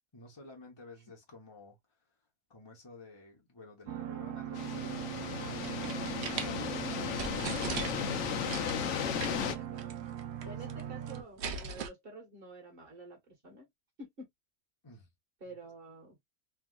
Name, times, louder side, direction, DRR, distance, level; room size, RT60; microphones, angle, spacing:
voice 1, 0.1-2.0 2.5-7.9 10.3-10.8 11.4-11.5 14.8-15.1 15.5-15.6, left 2 dB, 25° left, 0.7 m, -53 dB
sound 1, 3.9-11.2, right 10 dB, 85° right, 1.2 m, -40 dB
sound 2, 4.5-9.6, left 9 dB, 65° left, 0.8 m, -35 dB
sound 3, 5.4-6.5 6.9-7.0 7.2-8.1 8.5-8.8 9.2-9.5 9.8-9.9 10.2-10.8 11.1-11.9, right 6 dB, 60° right, 0.7 m, -38 dB
voice 2, 9.0-10.0 10.4-13.7 14.0-14.3 15.4-16.2, right 2 dB, 40° right, 1.5 m, -49 dB
3.4 x 2.3 x 2.3 m
omnidirectional pair, 1.6 m